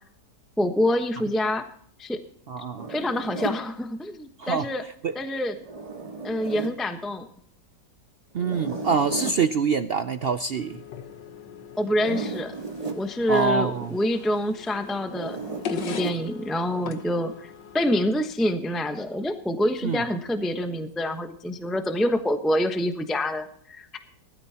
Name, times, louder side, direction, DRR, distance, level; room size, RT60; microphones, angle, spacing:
voice 1, 0.6-1.7 2.0-2.2 2.9-4.8 5.1-5.5 6.2-7.3 11.8-12.5 12.9-15.4 15.7-24.0, left 1 dB, ahead, 6 dB, 0.8 m, -26 dB
voice 2, 2.5-2.9 4.4-4.7 5.0-5.1 8.3-10.8 13.3-13.9 19.8-20.0, right 5 dB, 80° right, 9 dB, 0.5 m, -25 dB
Zipper (clothing), 2.8-3.6 5.6-6.8 8.4-9.5 11.8-13.0 15.1-16.2, right 3 dB, 20° right, 1.8 m, -34 dB
sound 1, 10.5-18.1, left 7 dB, 90° left, 1.8 m, -40 dB
19.5 x 13.0 x 2.9 m, 0.62 s
omnidirectional pair, 1.8 m